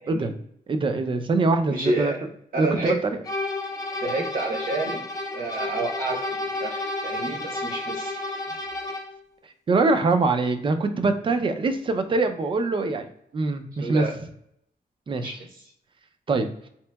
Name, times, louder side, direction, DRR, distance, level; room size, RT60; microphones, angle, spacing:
voice 1, 0.0-0.3 1.7-2.2 2.5-3.0 4.0-5.0 5.3-8.2 13.8-14.2 15.2-15.4, right 2 dB, 65° right, -1 dB, 0.9 m, -29 dB
voice 2, 0.7-2.1 2.6-3.2 9.7-13.1 13.3-14.1 15.1-15.4 16.3-16.5, right 3 dB, 35° right, 8 dB, 0.4 m, -23 dB
sound 1, 3.2-9.2, left 2 dB, 25° left, 0.5 m, -31 dB
4.2 x 2.8 x 2.2 m, 0.72 s
wide cardioid pair, 180°, 16 cm